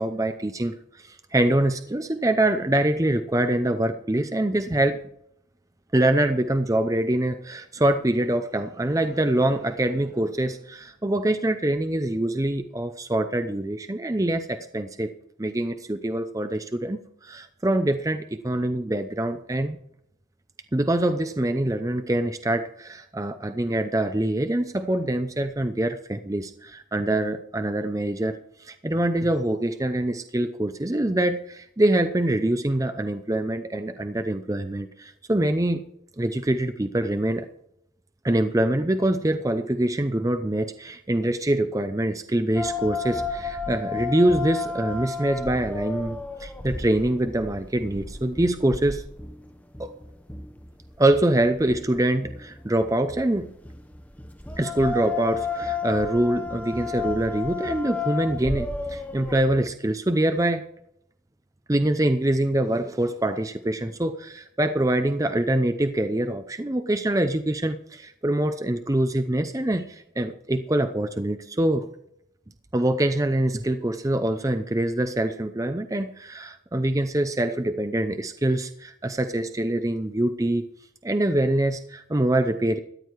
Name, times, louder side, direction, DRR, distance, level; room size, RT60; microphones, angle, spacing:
voice 1, 0.0-5.0 5.9-15.1 15.4-19.8 20.7-35.8 36.2-37.5 38.2-49.0 49.8-49.9 51.0-53.5 54.6-60.7 61.7-71.9 72.7-80.6 81.0-82.8, right 1 dB, 15° right, 9 dB, 0.6 m, -24 dB
sound 1, 42.6-59.7, left 4 dB, 10° left, 0.9 m, -33 dB
14.0 x 10.0 x 4.6 m, 0.73 s
head